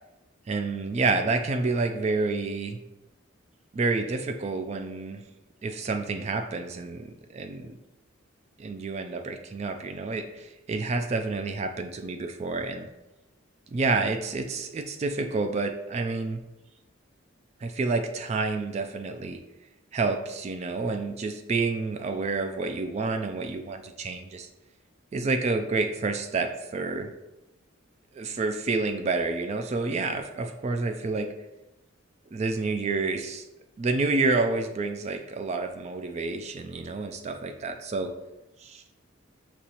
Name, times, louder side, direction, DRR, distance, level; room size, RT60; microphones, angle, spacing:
voice 1, 0.5-2.8 3.7-5.2 5.6-7.8 8.6-12.9 13.7-16.4 17.6-19.4 19.9-24.5 25.1-27.1 28.1-31.3 32.3-33.4 33.8-38.1 38.6-38.8, right 3 dB, 35° right, 7 dB, 0.3 m, -29 dB
6.2 x 2.9 x 2.9 m, 0.98 s
head